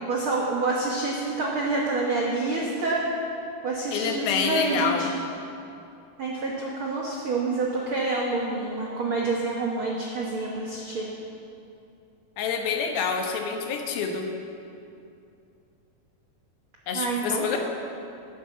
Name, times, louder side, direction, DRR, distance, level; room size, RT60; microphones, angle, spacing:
voice 1, 0.0-3.1 3.6-5.2 6.2-11.1 16.9-17.6, right 3 dB, 75° right, -3 dB, 1.2 m, -27 dB
voice 2, 3.9-5.1 12.4-14.3 16.9-17.6, left 6 dB, 80° left, 3 dB, 2.9 m, -27 dB
11.0 x 10.0 x 7.0 m, 2.6 s
omnidirectional pair, 4.3 m